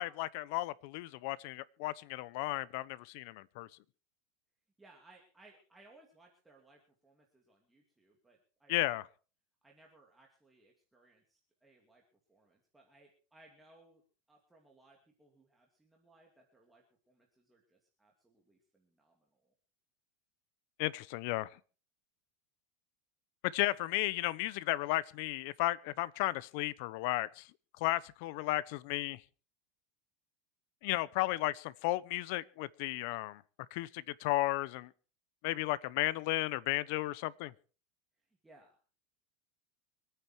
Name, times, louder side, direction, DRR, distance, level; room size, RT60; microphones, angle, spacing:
voice 1, 0.0-3.7 8.7-9.1 20.8-21.5 23.4-27.5 27.8-29.2 30.8-33.4 33.7-34.9 35.4-37.5, left 17 dB, 60° left, 0.8 m, -34 dB
voice 2, 4.8-8.7 9.6-12.0 12.3-14.0 14.3-19.5 38.4-38.8, right 2 dB, 5° right, 2.7 m, -64 dB
25.0 x 9.3 x 4.6 m
supercardioid pair, 150°, 0 cm